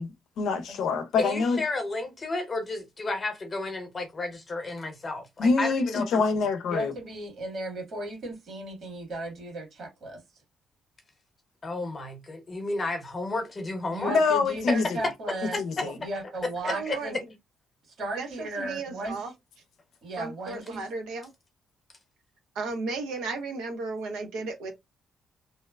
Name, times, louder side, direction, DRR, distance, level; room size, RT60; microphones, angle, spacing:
voice 1, 0.0-1.6 5.4-6.9 14.1-15.0 15.6-15.9, left 4 dB, 75° left, 0.5 m, -25 dB
voice 2, 1.2-6.2 11.6-14.2 14.7-14.8 15.0-15.1 15.5-15.9 16.6-17.0, left 2 dB, 35° left, 0.9 m, -32 dB
voice 3, 6.7-10.2 13.9-17.1 18.0-19.2 20.0-20.8, right 1 dB, 60° right, 1.7 m, -35 dB
voice 4, 16.6-17.2 18.2-19.3 20.2-21.3 22.5-24.7, right 3 dB, 90° right, 0.8 m, -34 dB
2.8 x 2.1 x 2.3 m
cardioid pair, 90°, 0 cm